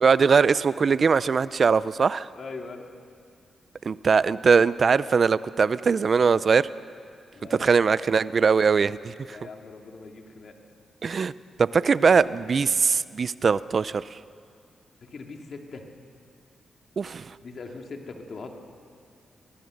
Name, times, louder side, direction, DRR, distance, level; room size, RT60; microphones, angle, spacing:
voice 1, 0.0-2.3 3.8-6.7 7.5-9.4 11.0-11.3 11.6-14.2 17.0-17.3, right 5 dB, 55° right, 17 dB, 0.5 m, -21 dB
voice 2, 2.4-2.9 7.3-8.0 9.3-10.5 12.3-12.8 15.0-15.8 17.4-18.6, left 4 dB, 60° left, 3 dB, 2.6 m, -41 dB
24.5 x 20.5 x 6.6 m, 2.3 s
cardioid pair, 55°, 0 cm